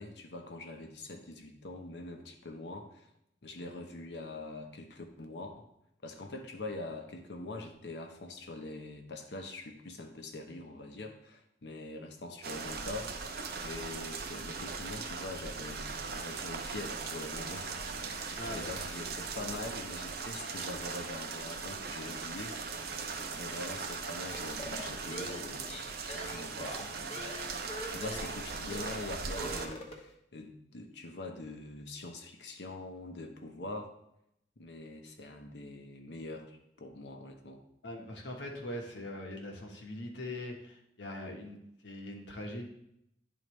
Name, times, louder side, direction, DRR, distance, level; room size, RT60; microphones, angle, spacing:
voice 1, 0.0-3.1 3.4-5.7 6.0-13.3 13.6-23.0 23.3-27.4 27.9-33.9 34.6-37.6, left 2 dB, 70° left, 4 dB, 0.9 m, -44 dB
sound 1, 12.4-29.7, right 4 dB, 60° right, 0.7 m, -39 dB
voice 2, 18.3-18.9 28.0-28.3 37.8-41.6 41.8-42.7, left 1 dB, 90° left, 1 dB, 1.3 m, -42 dB
sound 2, 24.3-28.4 28.7-29.0 29.3-30.1, equal, 35° left, 1.0 m, -43 dB
10.5 x 4.0 x 3.2 m, 0.78 s
head